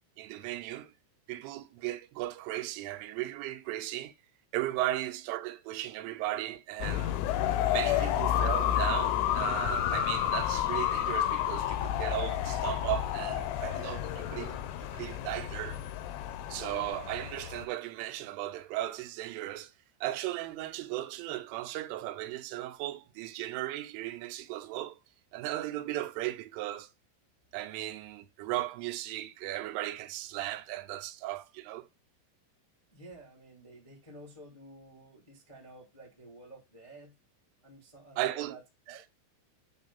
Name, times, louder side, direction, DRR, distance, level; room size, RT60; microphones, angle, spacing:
voice 1, 0.2-0.9 1.3-4.1 4.5-7.2 7.7-15.8 16.5-19.7 20.0-25.0 25.3-26.9 27.5-31.9 38.2-38.6 38.9-39.0, right 15 dB, 90° right, 3.2 m, -36 dB
sound 1, 6.8-17.7, left 11 dB, 85° left, 3.3 m, -30 dB
voice 2, 32.9-37.2 37.6-38.6 38.9-39.0, right 1 dB, 50° left, 0.4 m, -52 dB
8.7 x 3.1 x 5.5 m
omnidirectional pair, 5.6 m